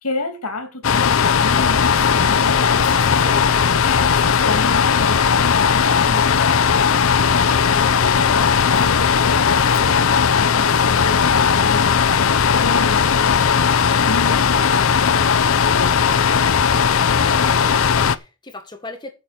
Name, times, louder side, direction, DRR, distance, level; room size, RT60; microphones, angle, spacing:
voice 1, 0.0-2.6 3.8-12.1 12.4-16.3, left 2 dB, 90° left, 2.7 m, -31 dB
sound 1, 0.8-18.2, left 6 dB, 65° left, 0.6 m, -17 dB
voice 2, 2.8-3.8 17.2-19.1, left 2 dB, 20° left, 1.5 m, -38 dB
9.5 x 7.3 x 6.6 m
head